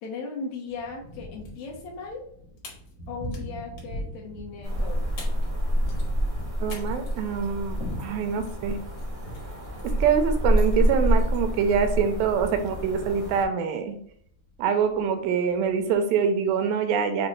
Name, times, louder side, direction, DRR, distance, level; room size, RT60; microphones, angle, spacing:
voice 1, 0.0-2.2 3.1-5.0 8.3-8.5, left 4 dB, 75° left, -1 dB, 1.7 m, -37 dB
Thunder, 0.7-16.0, equal, 45° left, 0.9 m, -43 dB
sound 1, 1.2-1.6 1.9-2.0 2.6-3.5 3.7-4.0 4.8-4.9 5.2-5.5 5.8-11.9, left 3 dB, 60° left, 1.7 m, -47 dB
sound 2, 4.6-13.4, equal, 60° right, 0.5 m, -27 dB
voice 2, 6.6-8.8 9.8-14.0 14.6-17.3, right 6 dB, 90° right, 7 dB, 2.4 m, -25 dB
5.9 x 2.2 x 3.1 m, 0.63 s
omnidirectional pair, 4.1 m